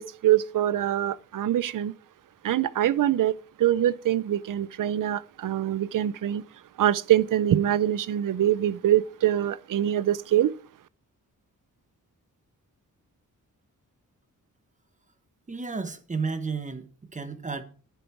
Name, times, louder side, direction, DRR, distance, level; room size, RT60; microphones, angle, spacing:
voice 1, 0.0-1.9 2.4-6.4 6.8-10.5, right 12 dB, 70° right, 0.6 m, -24 dB
voice 2, 15.5-17.6, right 4 dB, 20° right, 1.2 m, -32 dB
11.0 x 9.2 x 4.6 m
wide cardioid pair, 170°, 33 cm